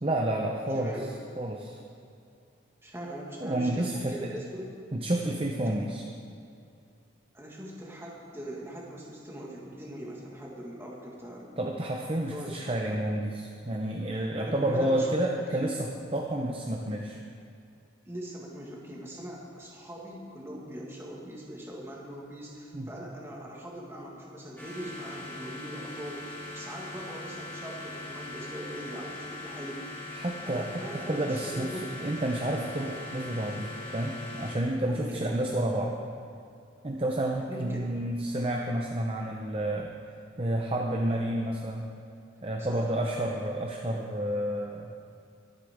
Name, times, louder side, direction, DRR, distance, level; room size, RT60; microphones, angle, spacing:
voice 1, 0.0-0.9 1.4-1.7 3.4-4.3 4.9-6.1 11.6-17.2 22.7-22.9 30.1-36.0 36.8-39.9 40.4-41.9 42.4-44.9, right 1 dB, 30° right, 0 dB, 0.7 m, -30 dB
voice 2, 0.7-1.1 2.8-4.8 5.6-5.7 7.3-11.6 12.3-13.1 14.1-15.1 15.5-15.7 18.0-29.9 30.5-32.1 34.7-35.3 37.5-37.9 42.6-42.9, right 1 dB, 10° right, -3 dB, 1.7 m, -41 dB
sound 1, 24.6-34.6, left 2 dB, 10° left, 2.3 m, -41 dB
23.0 x 8.3 x 3.6 m, 2.5 s
head